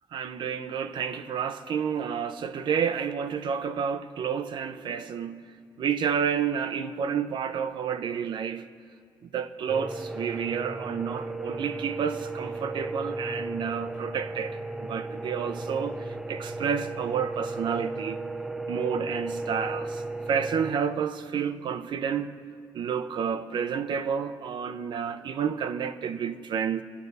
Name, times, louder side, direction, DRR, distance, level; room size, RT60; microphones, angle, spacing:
voice 1, 0.1-5.4 5.8-8.7 9.3-18.2 18.7-20.0 20.3-22.4 22.7-26.8, right 7 dB, 70° right, 0.6 m, -30 dB
sound 1, 9.7-20.7, right 2 dB, 5° right, 0.4 m, -35 dB
22.5 x 8.2 x 4.0 m
wide cardioid pair, 140°, 8 cm